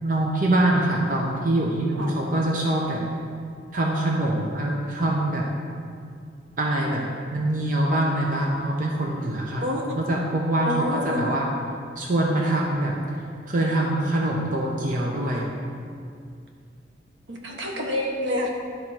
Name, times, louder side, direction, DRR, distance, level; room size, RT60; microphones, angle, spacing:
voice 1, 0.0-3.0 3.7-5.5 6.6-7.0 7.3-9.6 10.0-11.5 12.0-13.0 13.5-15.5, right 1 dB, 45° right, -2 dB, 0.8 m, -24 dB
voice 2, 10.6-11.2 17.3-18.5, left 1 dB, 80° right, 0 dB, 1.2 m, -27 dB
11.0 x 3.8 x 5.8 m, 2.3 s
head